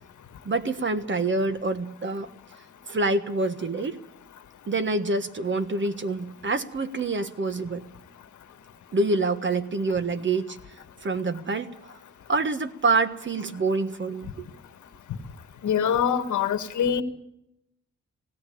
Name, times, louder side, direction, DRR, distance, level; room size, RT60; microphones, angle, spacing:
voice 1, 0.4-2.3 2.9-4.0 4.7-7.9 8.9-10.6 11.0-12.0 12.3-14.5, right 3 dB, 40° right, 1.4 m, -26 dB
voice 2, 15.6-17.0, left 8 dB, 85° left, 1.6 m, -24 dB
18.5 x 17.0 x 8.6 m
cardioid pair, 95°, 29 cm